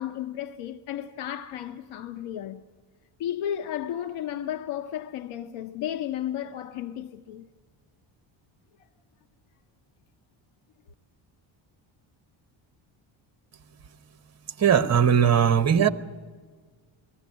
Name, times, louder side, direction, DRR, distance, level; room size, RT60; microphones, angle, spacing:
voice 1, 0.0-2.6 3.2-7.5, left 11 dB, 90° left, 0.8 m, -33 dB
voice 2, 14.6-15.9, right 8 dB, 35° right, 0.9 m, -19 dB
20.0 x 14.5 x 9.6 m
cardioid pair, 155°, 48 cm